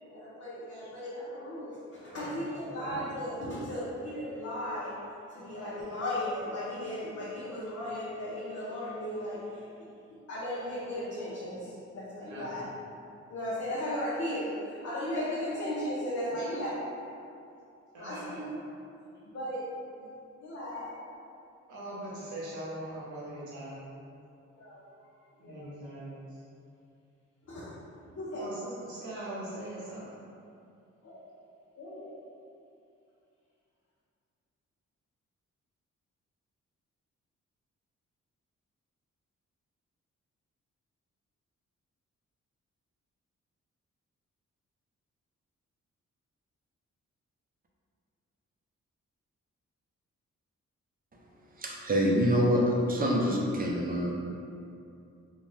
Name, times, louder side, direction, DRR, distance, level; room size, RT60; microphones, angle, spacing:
voice 1, 0.0-5.0 5.3-9.7 10.1-12.7 13.3-14.6 14.8-16.9 17.9-18.6 19.3-19.6 20.4-20.9 24.5-24.9 25.4-25.7 27.4-27.7 28.2-28.5 31.0-31.2 31.8-32.1, left 1 dB, 55° left, -9 dB, 0.7 m, -36 dB
voice 2, 2.1-2.4 2.7-3.0 12.3-12.6 16.4-16.5 17.9-18.4 21.7-23.8 25.4-26.1 28.3-30.1, right 1 dB, 85° right, -8 dB, 0.6 m, -41 dB
voice 3, 51.6-54.1, equal, 30° right, -2 dB, 0.5 m, -26 dB
2.7 x 2.2 x 3.1 m, 2.6 s
cardioid pair, 65°, 29 cm